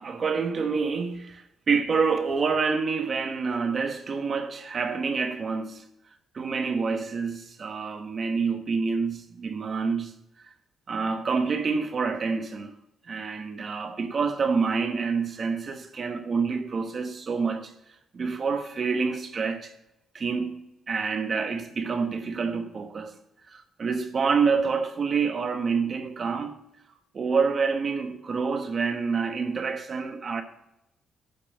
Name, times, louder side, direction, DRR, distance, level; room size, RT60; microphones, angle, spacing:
voice 1, 0.0-5.8 6.3-10.1 10.9-12.7 13.1-17.7 18.1-19.7 20.1-23.2 23.5-26.6 27.1-30.4, right 5 dB, 45° right, 1.2 m, -27 dB
10.5 x 6.7 x 3.7 m
cardioid pair, 90°, 0 cm